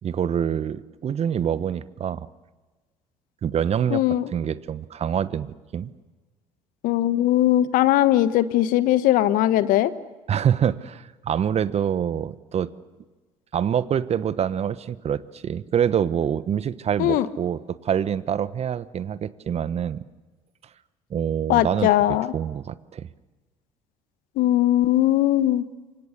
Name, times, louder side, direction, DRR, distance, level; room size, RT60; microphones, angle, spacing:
voice 1, 0.0-2.3 3.4-4.0 4.3-5.9 10.3-12.7 13.5-20.0 21.1-23.1, right 8 dB, 40° right, 16 dB, 1.1 m, -26 dB
voice 2, 3.9-4.2 6.8-9.9 17.0-17.3 21.5-22.3 24.4-25.6, left 13 dB, 65° left, 15 dB, 1.2 m, -19 dB
29.0 x 24.5 x 6.7 m, 1.3 s
hypercardioid pair, 55°, 16 cm